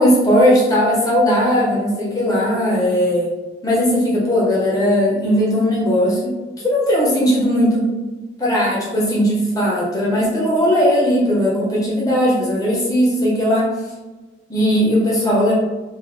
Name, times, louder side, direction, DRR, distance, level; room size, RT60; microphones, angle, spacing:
voice 1, 0.0-3.3 3.6-6.3 6.6-7.9 8.4-13.7 14.5-15.5, equal, 20° left, -6 dB, 1.2 m, -17 dB
4.6 x 2.7 x 3.0 m, 1.2 s
head